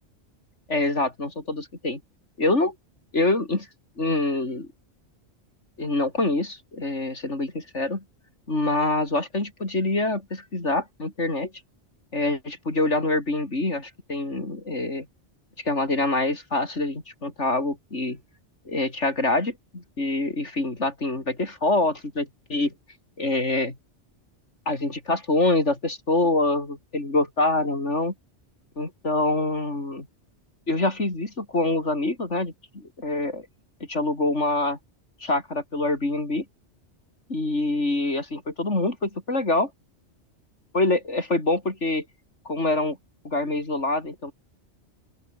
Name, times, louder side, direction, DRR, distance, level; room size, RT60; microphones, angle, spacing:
voice 1, 0.7-2.0 2.4-2.7 3.1-3.7 4.0-4.7 5.8-8.0 8.5-11.5 12.1-15.1 15.6-18.2 18.6-22.7 23.2-23.8 24.6-28.1 28.8-30.1 30.7-33.4 33.9-34.8 35.2-36.4 37.3-39.7 40.7-42.0 42.4-43.0 43.2-44.3, left 2 dB, 85° left, 5.1 m, -25 dB
open air
omnidirectional pair, 1.2 m